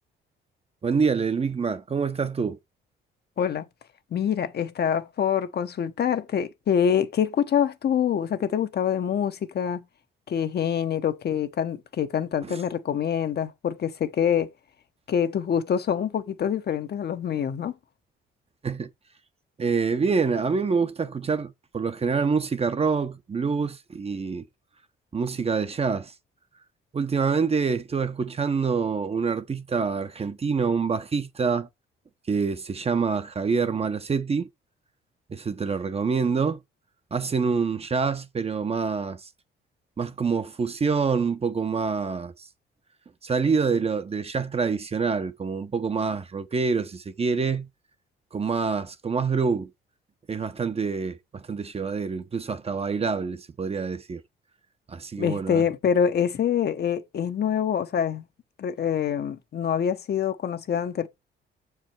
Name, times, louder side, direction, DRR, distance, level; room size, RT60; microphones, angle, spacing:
voice 1, 0.8-2.6 12.4-12.6 18.6-18.9 19.6-24.5 25.1-26.1 26.9-31.7 32.3-34.5 35.3-36.6 37.1-39.3 40.0-42.3 43.2-47.7 48.3-49.7 50.3-54.2 54.9-55.6, right 5 dB, 30° right, 0.8 m, -26 dB
voice 2, 4.1-9.8 10.3-14.5 15.1-17.7 55.2-58.2 58.6-61.1, left 8 dB, 55° left, 0.9 m, -25 dB
6.8 x 4.8 x 4.5 m
cardioid pair, 90°, 20 cm